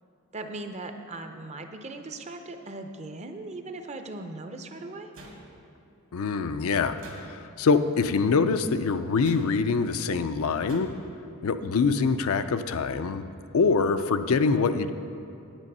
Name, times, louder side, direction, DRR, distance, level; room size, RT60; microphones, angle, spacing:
voice 1, 0.3-5.1 13.6-14.0, right 2 dB, 30° right, 6 dB, 0.6 m, -39 dB
sound 1, 5.1-5.9 7.0-7.7 9.2-9.8 10.7-11.2, right 1 dB, 65° right, 1.6 m, -48 dB
voice 2, 6.1-10.9 11.4-13.3 13.5-14.9, left 4 dB, 70° left, 10 dB, 0.4 m, -24 dB
9.1 x 8.5 x 5.4 m, 2.7 s
head